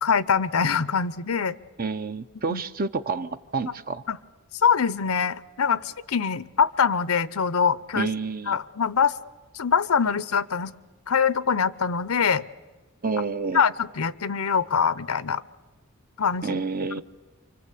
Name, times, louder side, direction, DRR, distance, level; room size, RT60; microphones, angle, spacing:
voice 1, 0.0-1.6 2.5-2.6 4.1-4.2 4.6-8.1 8.5-9.1 9.5-10.7 11.1-12.4 13.5-15.4 16.2-16.6, left 6 dB, 75° left, 17 dB, 0.8 m, -23 dB
voice 2, 1.8-4.0 8.0-8.6 13.0-13.6 16.4-17.0, right 4 dB, 40° right, 11 dB, 0.8 m, -29 dB
28.0 x 25.0 x 8.4 m, 1.2 s
head